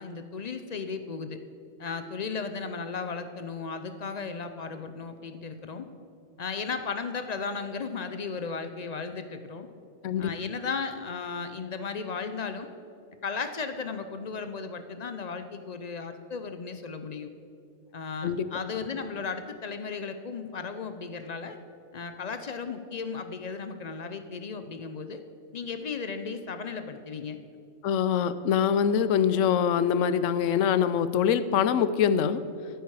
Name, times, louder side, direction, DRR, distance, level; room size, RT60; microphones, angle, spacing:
voice 1, 0.0-1.4 1.8-5.9 6.4-9.7 10.2-12.7 13.2-17.3 17.9-21.6 21.9-25.2 25.5-27.4, left 5 dB, 50° left, 9 dB, 0.5 m, -35 dB
voice 2, 27.8-32.4, left 8 dB, 75° left, 14 dB, 0.9 m, -24 dB
14.0 x 8.1 x 4.8 m, 2.6 s
omnidirectional pair, 1.4 m